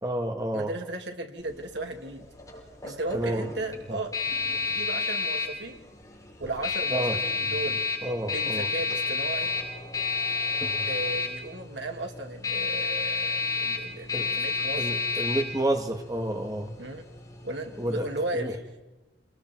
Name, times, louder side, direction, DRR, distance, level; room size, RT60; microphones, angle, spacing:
voice 1, 0.0-0.7 2.9-3.5 3.9-4.0 6.9-7.2 8.0-8.7 14.1-14.3 14.8-16.7 17.8-18.1 18.3-18.5, right 1 dB, 20° right, 3 dB, 1.8 m, -30 dB
voice 2, 0.5-2.3 2.8-4.1 4.7-5.8 6.4-7.8 8.3-9.5 10.9-14.9 16.8-17.0 17.4-18.6, right 2 dB, 75° right, 3 dB, 2.7 m, -35 dB
sound 1, 1.4-18.2, left 4 dB, 20° left, 6.6 m, -31 dB
29.5 x 20.5 x 4.7 m, 1.0 s
head